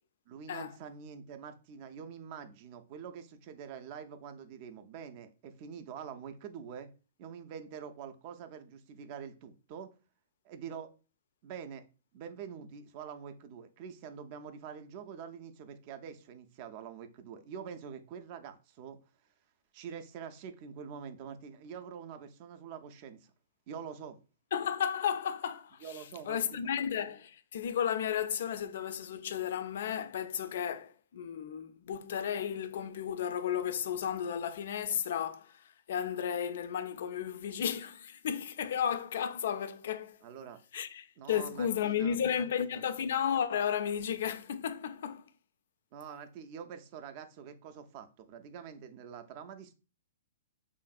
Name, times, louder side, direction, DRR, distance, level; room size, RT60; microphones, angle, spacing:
voice 1, 0.3-6.9 7.2-9.9 10.4-10.9 11.4-11.8 12.1-19.0 19.7-23.3 23.7-24.2 25.8-26.6 40.2-40.6 41.2-42.2 42.6-42.8 45.9-49.7, right 7 dB, 45° right, 0.4 m, -45 dB
voice 2, 24.5-40.2 40.7-45.2, left 8 dB, 65° left, 0.3 m, -33 dB
2.8 x 2.5 x 2.4 m
hypercardioid pair, 130°, 0 cm